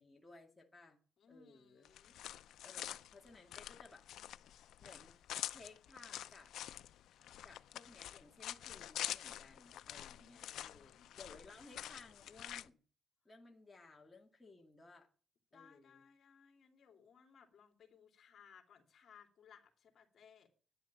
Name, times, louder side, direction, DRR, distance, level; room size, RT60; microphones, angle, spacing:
voice 1, 0.0-1.0 1.3-1.9 2.6-4.1 4.8-5.2 5.5-6.5 7.4-12.8 13.2-15.1 15.5-16.0, left 3 dB, 10° left, 2.2 m, -59 dB
voice 2, 1.2-2.2 10.1-11.1 15.5-20.5, left 7 dB, 50° left, 3.0 m, -63 dB
sound 1, 1.8-12.7, left 12 dB, 75° left, 0.6 m, -47 dB
11.0 x 10.5 x 7.5 m
cardioid pair, 130°, 0 cm